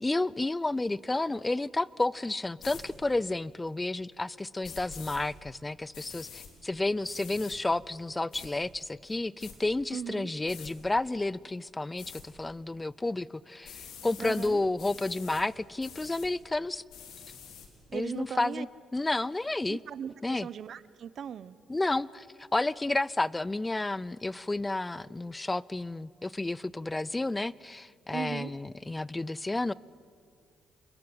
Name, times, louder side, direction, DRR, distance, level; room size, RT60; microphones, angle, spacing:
voice 1, 0.0-16.8 17.9-18.7 18.9-19.8 20.2-20.5 21.7-29.7, left 2 dB, 15° left, 22 dB, 0.5 m, -31 dB
sound 1, 2.6-2.8 4.6-5.2 5.9-6.5 7.0-7.6 8.3-8.5 9.1-9.5 10.5-10.7 12.0-12.2 13.6-14.5 14.8-15.4 15.8-16.3 16.9-17.7, left 7 dB, 85° left, 3.9 m, -46 dB
voice 2, 9.9-10.3 14.2-14.6 17.9-18.7 19.7-21.6 28.1-28.5, right 8 dB, 60° right, 17 dB, 0.8 m, -38 dB
27.0 x 22.0 x 7.9 m, 2.3 s
cardioid pair, 90°, 0 cm